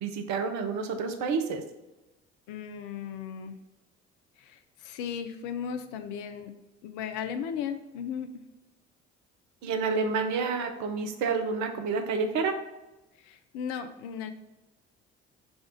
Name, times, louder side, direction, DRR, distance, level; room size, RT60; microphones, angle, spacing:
voice 1, 0.0-1.6 9.6-12.5, right 4 dB, 55° right, 6 dB, 0.7 m, -29 dB
voice 2, 2.5-3.6 4.4-6.5 6.8-8.3 13.2-14.3, left 7 dB, 60° left, 8 dB, 0.5 m, -36 dB
5.1 x 2.4 x 3.7 m, 1.0 s
figure-of-eight pair, 50°, 35 cm